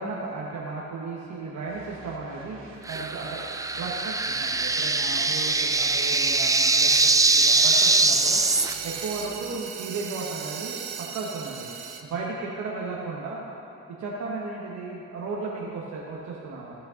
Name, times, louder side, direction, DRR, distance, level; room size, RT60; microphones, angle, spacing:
voice 1, 0.0-2.6 2.9-3.4 3.7-8.4 8.8-11.7 12.0-13.5 13.9-16.7, right 3 dB, 70° right, -4 dB, 1.3 m, -35 dB
sound 1, 1.7-9.6, right 2 dB, 45° right, 1.9 m, -48 dB
sound 2, 2.9-8.7, right 3 dB, 10° right, 0.4 m, -22 dB
sound 3, 6.9-12.0, right 8 dB, 85° right, 0.8 m, -38 dB
16.5 x 5.6 x 3.8 m, 2.8 s
cardioid pair, 90°, 30 cm